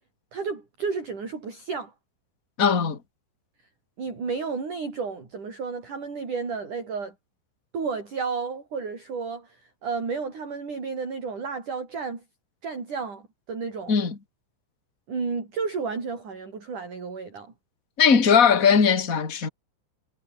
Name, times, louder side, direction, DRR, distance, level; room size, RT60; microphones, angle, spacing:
voice 1, 0.3-1.9 4.0-7.1 7.7-12.2 12.6-13.9 15.1-17.5, right 5 dB, 40° right, 7.2 m, -32 dB
voice 2, 2.6-3.0 13.9-14.2 18.0-19.5, left 6 dB, 20° left, 2.4 m, -19 dB
omnidirectional pair, 6.0 m